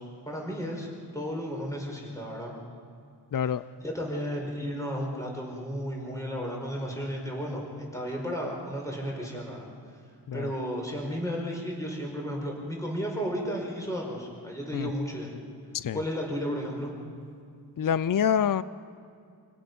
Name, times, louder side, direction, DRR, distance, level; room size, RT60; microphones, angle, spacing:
voice 1, 0.2-0.9 1.1-2.5 3.3-7.6 7.9-9.7 10.3-15.3 15.9-16.9, equal, 10° left, -1 dB, 5.0 m, -33 dB
voice 2, 3.3-3.6 10.3-10.5 14.7-14.9 15.7-16.0 17.8-18.6, left 8 dB, 55° left, 16 dB, 0.5 m, -26 dB
27.0 x 17.5 x 5.4 m, 2.3 s
wide cardioid pair, 90°, 41 cm